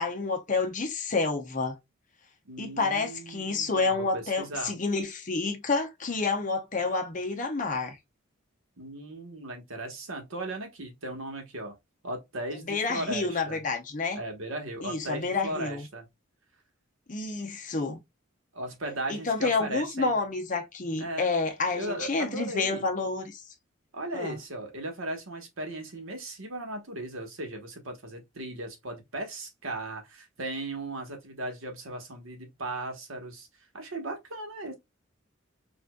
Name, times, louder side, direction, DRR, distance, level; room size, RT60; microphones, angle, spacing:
voice 1, 0.0-1.8 2.6-8.0 12.6-14.2 14.8-15.9 17.1-18.0 19.1-23.4 24.1-24.4, left 3 dB, 35° left, 0.8 m, -29 dB
voice 2, 2.4-4.7 8.8-11.7 12.0-13.6 14.1-16.1 18.5-20.1 21.0-21.3 21.7-22.8 23.9-34.7, right 1 dB, 80° right, 1.2 m, -37 dB
5.0 x 2.6 x 2.3 m
head